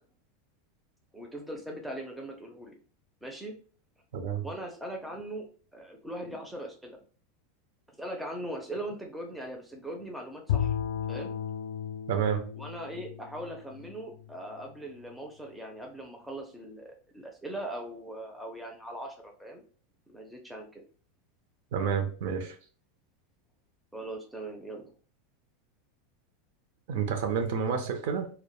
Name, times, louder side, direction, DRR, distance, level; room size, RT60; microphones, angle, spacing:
voice 1, 1.1-2.7 3.2-3.5 4.4-5.5 5.7-7.0 8.0-10.8 11.1-11.3 12.6-19.6 20.1-20.8 23.9-24.9, right 1 dB, 5° right, 1 dB, 0.4 m, -40 dB
voice 2, 4.1-4.5 12.1-12.5 21.7-22.6 26.9-28.3, right 7 dB, 65° right, 5 dB, 0.5 m, -29 dB
Bowed string instrument, 10.5-14.7, left 9 dB, 85° left, 0.3 m, -34 dB
2.1 x 2.1 x 2.9 m, 0.41 s
supercardioid pair, 160°, 0 cm